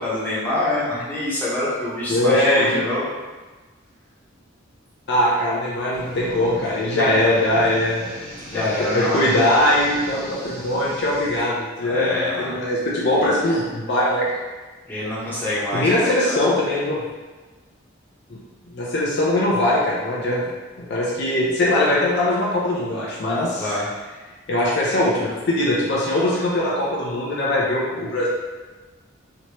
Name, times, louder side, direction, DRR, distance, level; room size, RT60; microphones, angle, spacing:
voice 1, 0.0-3.0 7.0-7.6 8.4-9.3 11.8-12.7 13.2-13.4 14.9-16.4 23.6-23.8, left 1 dB, 10° left, -10 dB, 1.1 m, -26 dB
voice 2, 2.1-2.9 5.1-8.1 8.8-14.4 15.7-17.0 18.3-18.4 18.7-20.4 20.8-23.7 24.5-28.3, left 1 dB, 55° left, -5 dB, 0.5 m, -21 dB
sound 1, 5.9-11.4, equal, 80° right, 1.1 m, -38 dB
3.2 x 2.9 x 3.0 m, 1.3 s
head